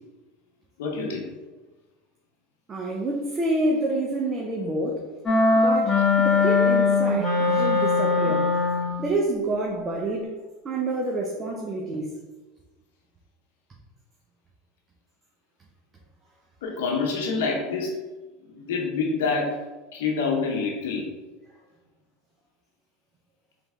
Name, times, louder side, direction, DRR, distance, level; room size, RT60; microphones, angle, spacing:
voice 1, 0.8-1.3 6.3-6.5 8.2-8.3 16.6-18.0 18.4-19.6 19.9-21.1, left 4 dB, 85° left, -1 dB, 0.7 m, -27 dB
voice 2, 2.7-5.0 5.5-8.6 9.0-10.3 10.6-12.2, right 2 dB, 25° right, -1 dB, 0.6 m, -28 dB
sound 1, 5.3-9.1, left 3 dB, 10° left, 1.4 m, -21 dB
3.4 x 3.2 x 3.6 m, 1.2 s
supercardioid pair, 110°, 0 cm